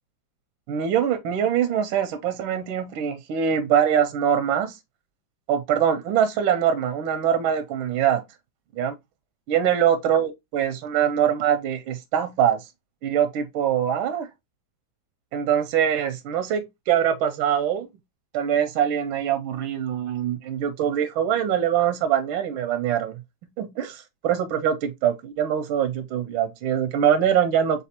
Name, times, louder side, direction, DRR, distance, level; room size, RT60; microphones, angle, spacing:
voice 1, 0.7-4.8 5.5-8.2 8.7-8.9 9.5-12.7 13.0-14.3 15.3-17.9 18.3-23.2 23.6-27.9, right 9 dB, 85° right, 1.4 m, -23 dB
4.1 x 3.8 x 2.8 m
omnidirectional pair, 2.2 m